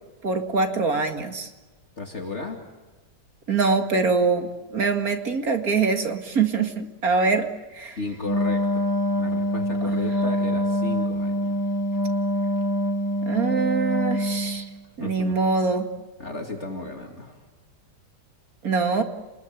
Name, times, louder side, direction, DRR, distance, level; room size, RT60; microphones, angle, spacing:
voice 1, 0.2-1.5 3.5-8.0 9.8-10.1 13.3-14.7 15.0-15.9 18.6-19.0, right 4 dB, 50° right, 5 dB, 2.5 m, -24 dB
voice 2, 2.0-2.6 8.0-11.6 15.0-15.4 16.2-17.4, left 3 dB, 40° left, 2 dB, 2.7 m, -34 dB
Wind instrument woodwind instrument, 8.2-14.7, equal, 10° left, 1.5 m, -25 dB
29.5 x 21.0 x 9.1 m, 1.2 s
omnidirectional pair, 2.0 m